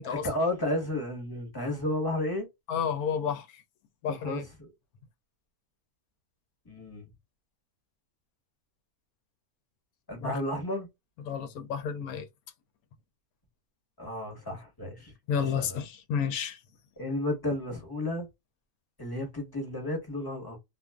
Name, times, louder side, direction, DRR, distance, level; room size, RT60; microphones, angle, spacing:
voice 1, 0.0-2.5 4.1-4.7 6.6-7.1 10.1-10.9 14.0-15.1 15.4-15.8 17.0-18.3 19.0-20.6, left 1 dB, 15° left, 1.1 m, -32 dB
voice 2, 2.7-3.6 4.0-4.4 10.2-10.4 11.3-12.3 15.3-16.6, left 7 dB, 90° left, 1.1 m, -31 dB
2.5 x 2.4 x 2.3 m
omnidirectional pair, 1.5 m